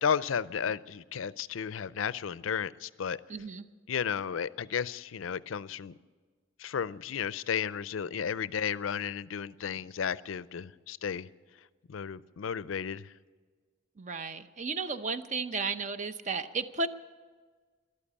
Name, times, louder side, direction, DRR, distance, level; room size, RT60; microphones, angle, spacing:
voice 1, 0.0-3.2 3.9-6.0 6.6-11.3 11.9-13.1, left 7 dB, 85° left, 18 dB, 0.5 m, -33 dB
voice 2, 3.3-3.7 14.0-16.9, right 4 dB, 40° right, 11 dB, 0.7 m, -34 dB
14.0 x 12.0 x 8.5 m, 1.5 s
head